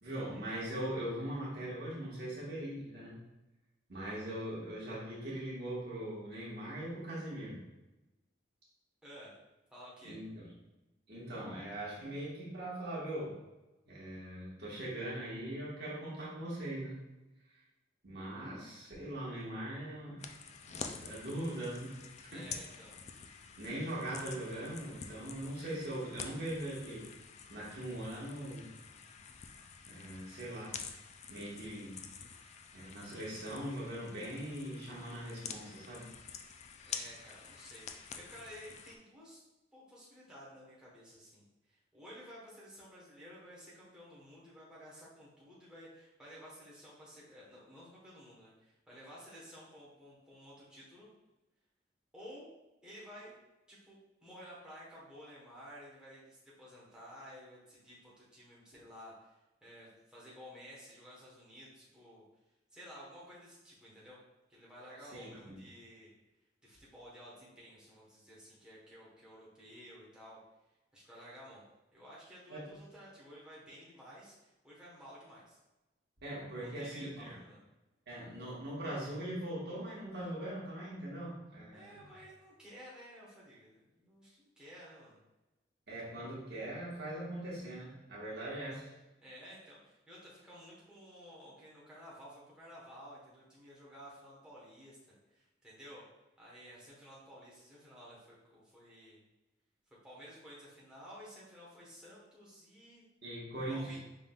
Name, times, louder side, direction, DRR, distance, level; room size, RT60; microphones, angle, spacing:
voice 1, 0.0-3.1 3.9-7.6 10.0-10.5 11.1-13.4 13.9-17.0 18.0-20.2 20.7-22.5 23.6-27.1 27.5-28.7 29.8-30.8 31.3-32.0 32.7-36.1 65.1-65.5 72.5-72.7 76.2-77.3 78.1-82.1 85.9-88.9 103.2-104.0, right 1 dB, 60° right, -6 dB, 1.4 m, -41 dB
voice 2, 9.0-9.3 9.7-10.2 22.2-23.0 36.9-39.4 39.7-51.1 52.1-52.5 52.8-53.3 53.7-59.3 59.6-62.2 62.7-64.2 64.5-66.1 66.6-70.4 70.9-71.7 71.9-75.6 76.6-77.6 81.7-85.2 89.2-95.0 95.3-96.0 96.4-99.2 100.0-103.0 103.7-104.0, equal, 5° right, -7 dB, 1.1 m, -53 dB
sound 1, 20.2-39.0, left 6 dB, 35° left, 0.3 m, -48 dB
5.3 x 3.6 x 2.3 m, 1.0 s
head